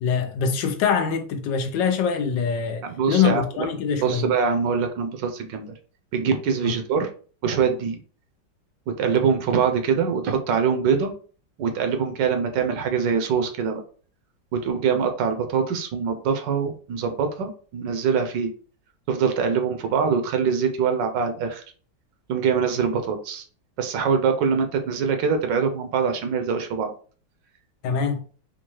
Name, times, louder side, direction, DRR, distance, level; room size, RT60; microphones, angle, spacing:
voice 1, 0.0-4.3 6.6-6.7 27.8-28.2, left 6 dB, 75° left, 1.3 m, -24 dB
voice 2, 2.8-3.4 4.0-5.7 6.1-7.1 7.4-8.0 8.9-11.1 11.6-13.8 14.5-18.5 19.1-21.6 22.3-23.4 23.8-26.9, right 6 dB, 80° right, 1.3 m, -23 dB
4.4 x 2.3 x 3.0 m
omnidirectional pair, 2.0 m